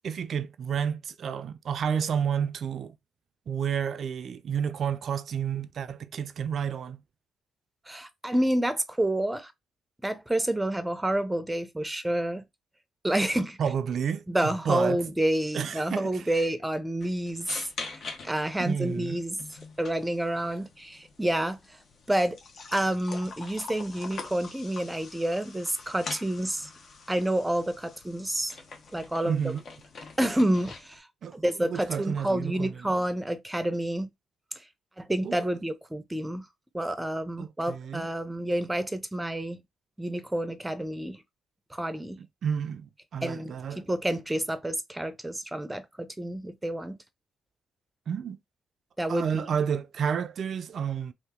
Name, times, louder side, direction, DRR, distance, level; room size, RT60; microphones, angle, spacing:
voice 1, 0.0-3.0 3.5-7.0 13.6-15.0 15.5-16.2 18.6-19.2 29.2-29.6 31.2-32.7 35.2-35.4 37.4-38.1 42.4-43.8 48.1-48.4 49.1-51.1, right 7 dB, 60° right, 0.4 m, -30 dB
voice 2, 7.9-9.5 10.0-12.4 13.0-13.6 14.3-19.4 19.8-21.8 22.1-22.4 22.7-26.7 27.1-28.6 28.9-29.4 30.2-31.1 31.3-34.1 35.0-36.5 36.7-39.6 40.0-41.2 41.7-42.2 43.2-47.0 49.0-49.5, right 1 dB, 10° right, 0.6 m, -29 dB
sound 1, 17.0-31.0, left 4 dB, 55° left, 1.0 m, -44 dB
2.8 x 2.6 x 3.6 m
cardioid pair, 90°, 0 cm